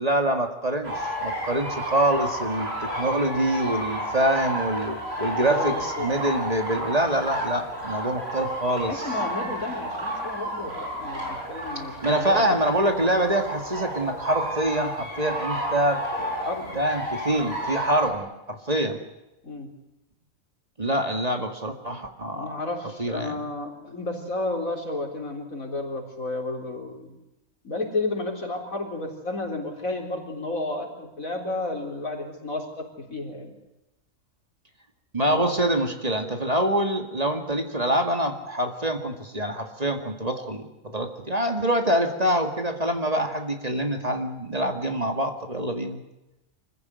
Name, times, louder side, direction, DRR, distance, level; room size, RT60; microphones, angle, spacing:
voice 1, 0.0-9.0 12.0-16.3 16.7-19.0 20.8-22.6 23.0-23.4 35.1-46.0, right 1 dB, 30° right, 5 dB, 2.2 m, -25 dB
sound 1, 0.8-18.1, equal, 50° right, 6.2 m, -32 dB
voice 2, 5.3-6.4 8.9-12.6 16.4-16.8 19.4-19.7 22.3-27.2 27.6-33.5 35.2-35.5, left 2 dB, 85° left, 1 dB, 4.4 m, -32 dB
25.0 x 15.5 x 9.5 m, 0.96 s
omnidirectional pair, 1.4 m